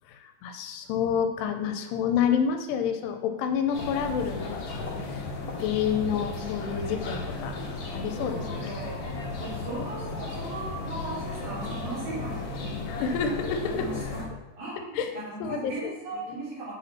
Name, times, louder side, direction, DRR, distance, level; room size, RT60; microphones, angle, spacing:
voice 1, 0.1-4.6 5.1-5.2 5.6-7.6 7.9-8.4 12.9-14.0 15.0-15.1 15.4-16.0, left 7 dB, 85° left, 6 dB, 2.7 m, -28 dB
sound 1, 3.7-14.2, left 3 dB, 60° left, 2.1 m, -35 dB
voice 2, 8.2-12.7 13.0-13.2 13.7-14.2 14.6-16.7, right 2 dB, 55° right, -10 dB, 4.0 m, -38 dB
7.6 x 4.2 x 5.8 m, 1.1 s
omnidirectional pair, 4.7 m